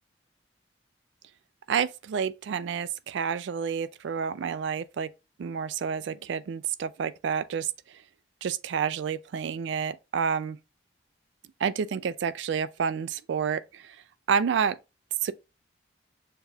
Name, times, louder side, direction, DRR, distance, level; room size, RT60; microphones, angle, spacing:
voice 1, 1.7-5.1 5.4-7.7 8.4-10.6 11.6-14.0 14.3-14.8 15.2-15.3, right 7 dB, 70° right, 0.3 m, -29 dB
6.6 x 2.3 x 2.6 m
head